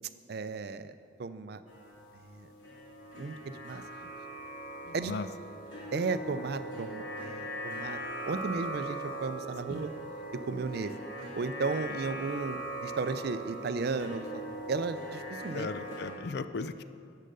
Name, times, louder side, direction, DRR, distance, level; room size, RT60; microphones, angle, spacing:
voice 1, 0.3-0.9 1.2-1.6 2.3-2.5 3.2-3.8 4.9-5.1 5.9-9.9 10.4-10.9 11.3-14.4 14.7-15.7, right 4 dB, 55° right, 12 dB, 0.4 m, -34 dB
sound 1, 1.7-16.1, right 1 dB, 75° left, 3.0 m, -40 dB
voice 2, 4.8-5.3 9.7-9.8 15.5-16.8, left 4 dB, 55° left, 13 dB, 0.4 m, -37 dB
10.0 x 6.5 x 6.7 m, 2.3 s
head